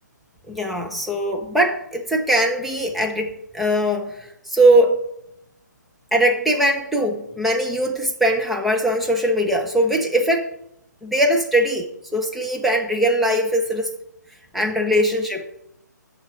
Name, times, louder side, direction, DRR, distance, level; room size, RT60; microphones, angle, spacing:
voice 1, 0.5-5.0 6.1-10.5 11.0-11.9 12.1-13.9 14.5-15.5, right 1 dB, ahead, 1 dB, 0.3 m, -20 dB
9.5 x 3.3 x 5.9 m, 0.78 s
figure-of-eight pair, 140°, 10 cm